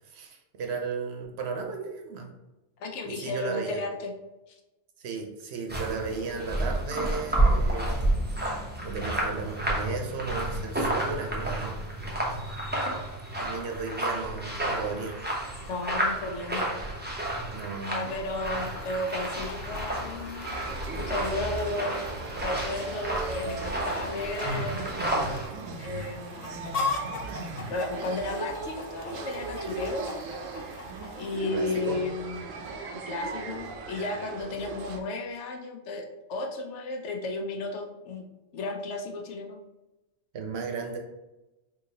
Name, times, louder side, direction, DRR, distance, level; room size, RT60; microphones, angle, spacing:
voice 1, 0.0-2.3 3.0-3.8 5.0-8.1 8.8-12.1 13.4-15.2 17.5-18.1 31.5-32.0 40.3-41.0, right 4 dB, 60° right, 2 dB, 0.9 m, -35 dB
voice 2, 2.8-4.1 4.5-4.6 15.7-16.8 17.9-20.4 20.9-22.0 22.4-24.8 25.8-27.2 27.7-30.1 31.2-32.5 33.1-38.3 38.5-39.6, left 2 dB, 70° left, 2 dB, 0.9 m, -34 dB
sound 1, 5.7-25.5, right 1 dB, 15° right, 0.4 m, -30 dB
Chicken rooster, 18.4-31.4, left 4 dB, 55° left, 0.4 m, -40 dB
sound 2, 20.4-35.0, right 3 dB, 85° right, 0.9 m, -37 dB
3.7 x 2.8 x 2.7 m, 1.0 s
omnidirectional pair, 1.3 m